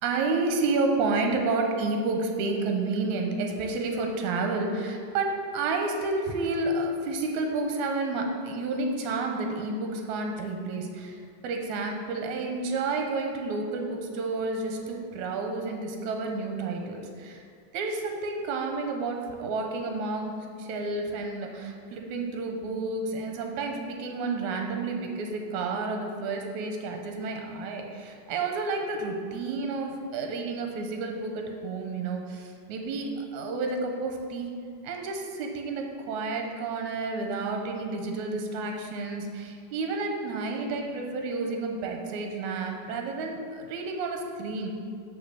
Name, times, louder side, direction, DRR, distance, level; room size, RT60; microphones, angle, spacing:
voice 1, 0.0-17.4 17.7-34.5 34.8-44.8, right 3 dB, 75° right, 2 dB, 2.2 m, -30 dB
6.2 x 5.7 x 6.7 m, 2.2 s
omnidirectional pair, 3.6 m